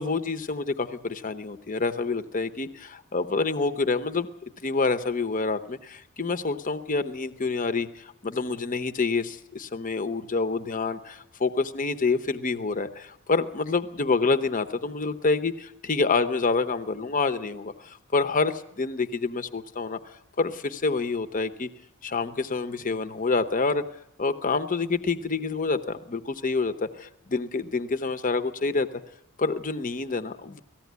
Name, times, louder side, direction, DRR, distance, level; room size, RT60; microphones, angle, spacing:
voice 1, 0.0-4.3 4.6-21.7 22.0-23.8 24.2-26.7 27.3-28.9 29.4-30.6, left 3 dB, 35° left, 9 dB, 0.8 m, -27 dB
18.5 x 15.0 x 9.4 m, 0.84 s
head